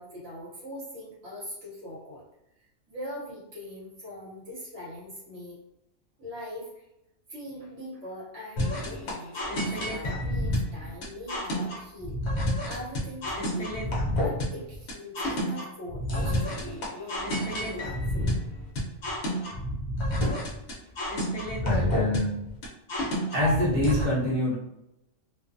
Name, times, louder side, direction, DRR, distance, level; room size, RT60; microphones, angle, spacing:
voice 1, 0.0-2.2 2.6-5.6 6.2-6.8 7.3-18.3, left 1 dB, 60° right, -7 dB, 1.1 m, -42 dB
sound 1, 8.6-24.0, equal, 60° left, 0.8 m, -29 dB
voice 2, 21.6-22.4 23.3-24.6, left 1 dB, 35° right, -8 dB, 0.9 m, -26 dB
2.5 x 2.1 x 2.5 m, 0.86 s
omnidirectional pair, 1.4 m